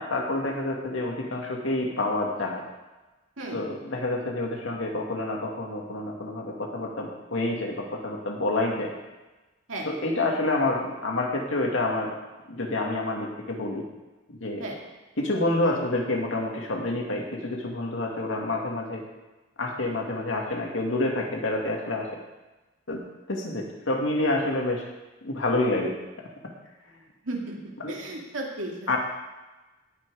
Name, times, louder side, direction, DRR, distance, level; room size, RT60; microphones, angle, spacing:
voice 1, 0.0-2.6 3.5-8.9 9.9-12.1 12.5-13.8 14.3-14.7 15.2-19.0 19.6-22.1 22.9-24.8 25.2-25.9 27.8-27.9 28.9-29.0, left 2 dB, 80° left, 0 dB, 2.2 m, -28 dB
voice 2, 27.3-27.6 27.9-28.9, right 2 dB, 85° right, -1 dB, 2.4 m, -34 dB
18.0 x 6.1 x 4.9 m, 1.1 s
head